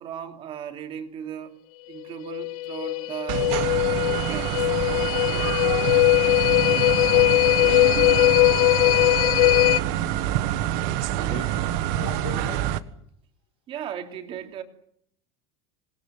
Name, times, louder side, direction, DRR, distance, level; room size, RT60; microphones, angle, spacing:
voice 1, 0.0-1.6 1.9-3.5 4.2-4.7 13.7-14.6, right 9 dB, 30° right, 3.1 m, -36 dB
sound 1, 2.3-9.8, left 18 dB, 85° left, 1.7 m, -20 dB
sound 2, 3.3-12.8, right 12 dB, 55° right, 1.5 m, -27 dB
voice 2, 7.8-10.0 11.1-12.8, left 11 dB, 70° left, 4.7 m, -41 dB
26.5 x 21.0 x 7.7 m
cardioid pair, 170°, 18 cm